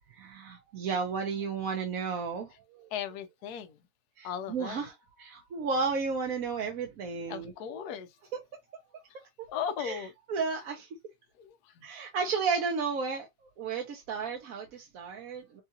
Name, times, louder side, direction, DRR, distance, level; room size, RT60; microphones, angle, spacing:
voice 1, 0.1-2.9 4.2-7.5 9.8-10.9 11.8-13.3 13.6-15.6, right 5 dB, 65° right, 1.2 m, -33 dB
voice 2, 2.9-3.7 4.2-4.8 7.3-8.1 9.5-10.1 11.4-11.8, left 8 dB, 80° left, 1.2 m, -37 dB
5.5 x 2.4 x 2.7 m
omnidirectional pair, 1.7 m